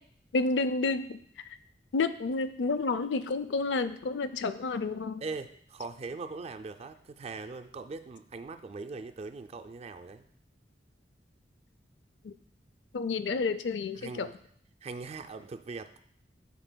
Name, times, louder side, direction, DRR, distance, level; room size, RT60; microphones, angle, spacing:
voice 1, 0.3-1.2 1.9-5.2 12.2-12.3 12.9-14.3, left 3 dB, 90° left, 12 dB, 0.4 m, -30 dB
voice 2, 5.2-10.3 14.0-14.3 14.8-15.9, right 4 dB, 35° right, 9 dB, 0.4 m, -41 dB
11.5 x 4.1 x 2.2 m, 0.64 s
head